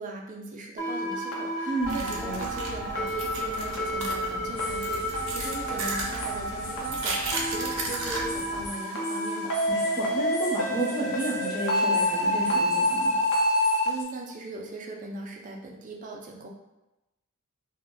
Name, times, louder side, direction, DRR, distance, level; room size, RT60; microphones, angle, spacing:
voice 1, 0.0-9.5 13.5-16.5, right 2 dB, 35° right, 1 dB, 0.4 m, -39 dB
sound 1, 0.8-13.9, equal, 60° left, 0.6 m, -28 dB
voice 2, 1.7-2.4 9.7-13.1, right 1 dB, 20° left, -6 dB, 0.8 m, -31 dB
sound 2, 1.8-8.7, right 2 dB, 80° right, 0.6 m, -35 dB
sound 3, 4.6-14.0, left 2 dB, 85° left, 0.9 m, -43 dB
2.4 x 2.1 x 3.7 m, 0.97 s
head